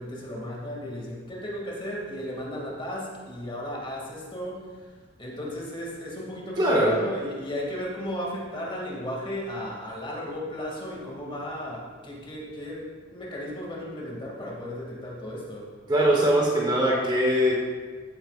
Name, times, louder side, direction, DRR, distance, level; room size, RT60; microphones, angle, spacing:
voice 1, 0.0-4.6 5.2-12.8 13.1-15.6, equal, 25° left, -3 dB, 2.3 m, -35 dB
voice 2, 6.6-7.0 15.9-17.5, equal, 20° right, -2 dB, 1.2 m, -21 dB
15.0 x 8.9 x 2.5 m, 1.5 s
head